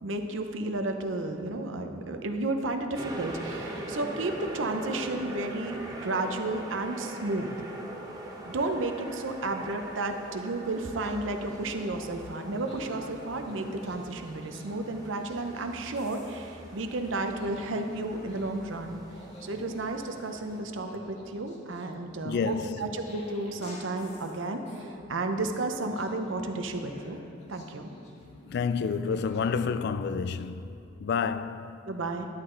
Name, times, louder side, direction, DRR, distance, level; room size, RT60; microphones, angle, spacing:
voice 1, 0.0-7.5 8.4-19.0 19.4-22.5 22.8-27.2 27.5-27.9 31.9-32.3, right 2 dB, 70° right, 0.7 m, -32 dB
sound 1, 2.9-20.6, right 1 dB, 20° right, 0.9 m, -42 dB
sound 2, 10.9-11.9 12.4-15.7 15.9-16.5 17.1-18.6 18.8-24.9 25.4-28.7 29.1-29.7, left 1 dB, 35° left, 1.6 m, -50 dB
voice 2, 22.2-23.0 28.5-31.8, left 5 dB, 55° left, 0.3 m, -30 dB
10.5 x 8.9 x 3.8 m
head